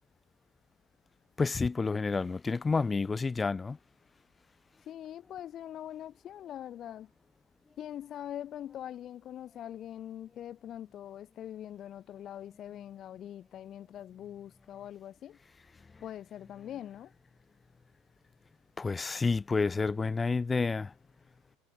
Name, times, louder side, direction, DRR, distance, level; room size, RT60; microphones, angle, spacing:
voice 1, 1.4-3.8 18.8-20.9, left 4 dB, 15° left, 0.9 m, -29 dB
voice 2, 4.9-7.1 7.8-15.4 16.0-17.1, left 11 dB, 40° left, 1.9 m, -43 dB
supercardioid pair, 125°, 0 cm